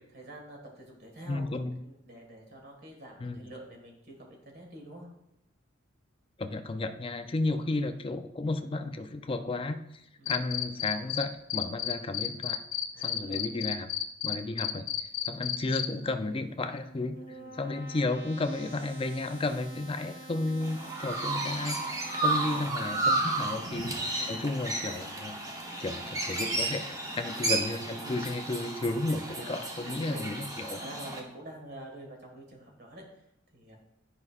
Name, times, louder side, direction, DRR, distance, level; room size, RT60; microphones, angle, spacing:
voice 1, 0.1-5.1 10.2-10.3 12.9-13.5 14.4-14.7 17.2-17.6 20.8-21.3 22.3-22.7 23.4-23.7 24.1-24.4 28.0-28.3 29.3-29.6 30.0-33.2 33.5-33.8, right 1 dB, 55° right, 0 dB, 1.7 m, -47 dB
voice 2, 1.3-1.8 3.2-3.4 6.4-12.6 13.0-13.9 14.2-14.9 15.3-23.9 24.3-25.4 25.8-26.9 27.2-29.2 29.5-30.8, left 2 dB, 25° left, 8 dB, 0.4 m, -33 dB
Cricket, 10.3-11.2 11.5-15.9, left 11 dB, 75° left, 0.5 m, -31 dB
sound 1, 16.6-23.1, right 1 dB, 70° right, 1.9 m, -47 dB
Chirp tweet, 20.6-31.2, right 2 dB, 20° right, 0.8 m, -33 dB
9.8 x 5.4 x 2.4 m, 0.82 s
head